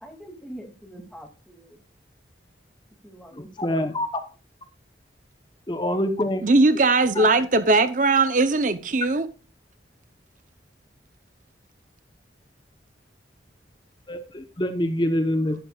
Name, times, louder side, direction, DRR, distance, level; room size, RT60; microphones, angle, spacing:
voice 1, 0.0-1.8 3.0-3.9, right 1 dB, ahead, 2.4 m, -44 dB
voice 2, 3.3-4.1 5.7-6.5 7.2-7.3 14.1-15.6, left 1 dB, 25° left, 0.9 m, -25 dB
voice 3, 6.4-9.3, right 3 dB, 45° right, 0.7 m, -19 dB
11.5 x 11.5 x 2.4 m
head